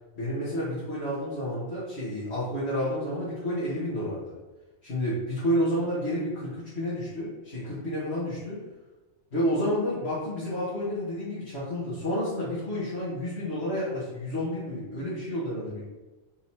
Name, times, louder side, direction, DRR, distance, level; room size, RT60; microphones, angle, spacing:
voice 1, 0.2-4.3 4.8-8.6 9.3-15.8, equal, 60° left, -10 dB, 2.3 m, -30 dB
6.1 x 4.1 x 4.4 m, 1.1 s
omnidirectional pair, 1.2 m